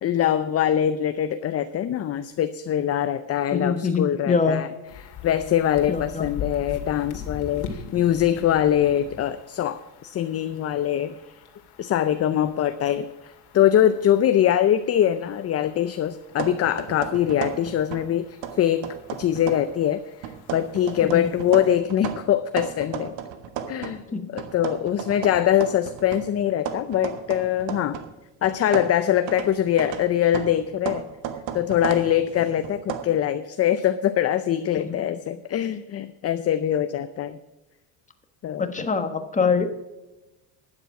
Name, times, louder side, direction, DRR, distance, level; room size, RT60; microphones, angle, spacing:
voice 1, 0.0-4.7 5.0-11.2 11.8-23.1 23.7-24.0 24.3-28.0 28.4-31.1 31.5-37.4 38.4-38.7, left 10 dB, 35° left, 11 dB, 0.6 m, -23 dB
voice 2, 3.5-4.6 5.9-6.3 21.0-21.2 24.1-24.3 34.8-35.0 38.6-39.7, left 5 dB, 15° left, 7 dB, 1.3 m, -24 dB
sound 1, 4.9-21.8, left 6 dB, 55° left, 2.2 m, -42 dB
sound 2, 16.3-18.1 18.4-19.8 20.2-24.0 24.4-28.2 28.4-33.0, right 9 dB, 75° right, 1.4 m, -34 dB
12.0 x 9.9 x 4.8 m, 1.0 s
cardioid pair, 125°, 45 cm